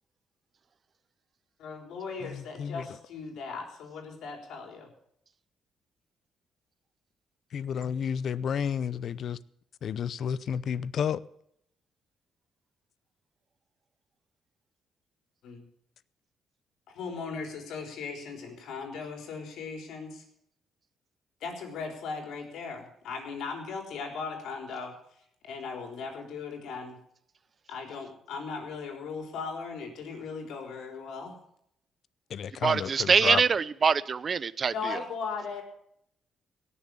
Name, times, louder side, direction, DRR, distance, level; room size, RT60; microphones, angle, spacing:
voice 1, 1.6-4.9 15.4-15.7 16.9-20.2 21.4-25.0 25.4-27.0 27.7-31.4 34.7-35.6, left 5 dB, 80° left, 3.8 m, -38 dB
voice 2, 2.2-2.9 7.5-9.4 9.8-11.2 32.3-33.4, left 8 dB, 60° left, 0.6 m, -31 dB
voice 3, 32.6-35.0, right 6 dB, 45° right, 0.6 m, -24 dB
17.5 x 7.0 x 8.5 m
cardioid pair, 90°, 0 cm